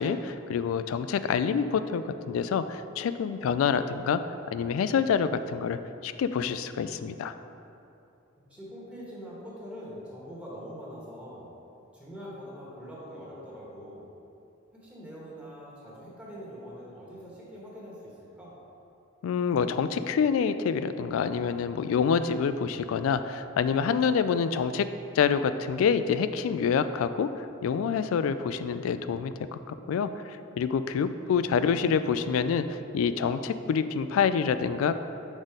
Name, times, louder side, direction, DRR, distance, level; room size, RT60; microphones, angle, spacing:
voice 1, 0.0-4.2 4.5-7.3 19.2-24.9 25.2-27.3 27.6-30.1 30.6-32.7 32.9-35.0, left 6 dB, 90° left, 12 dB, 0.3 m, -27 dB
voice 2, 8.4-11.5 11.9-14.1 14.8-18.5 31.4-31.9 32.1-32.3, equal, 5° right, -7 dB, 1.4 m, -44 dB
6.1 x 4.0 x 5.0 m, 2.7 s
head